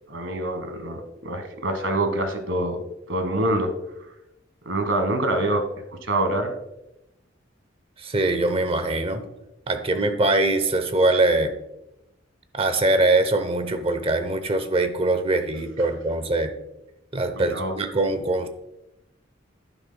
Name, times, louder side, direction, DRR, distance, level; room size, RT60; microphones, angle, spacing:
voice 1, 0.1-2.8 3.1-3.7 4.6-6.5 17.4-17.7, right 1 dB, 85° right, 7 dB, 1.4 m, -25 dB
voice 2, 8.0-9.2 9.7-11.5 12.5-16.5 17.1-18.5, right 2 dB, 30° right, 9 dB, 0.7 m, -22 dB
11.0 x 9.7 x 2.2 m, 0.90 s
head